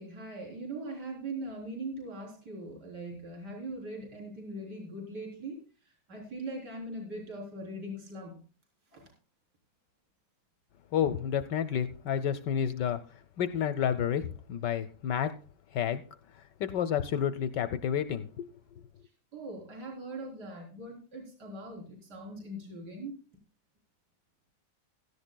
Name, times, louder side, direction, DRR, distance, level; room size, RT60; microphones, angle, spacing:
voice 1, 0.0-5.6 6.1-8.3 8.9-9.0 19.3-23.2, right 1 dB, 55° right, -1 dB, 4.3 m, -41 dB
voice 2, 10.9-13.0 13.4-15.3 15.7-16.0 16.6-18.5, left 9 dB, 70° left, 12 dB, 1.2 m, -30 dB
16.5 x 14.0 x 2.2 m, 0.38 s
omnidirectional pair, 2.2 m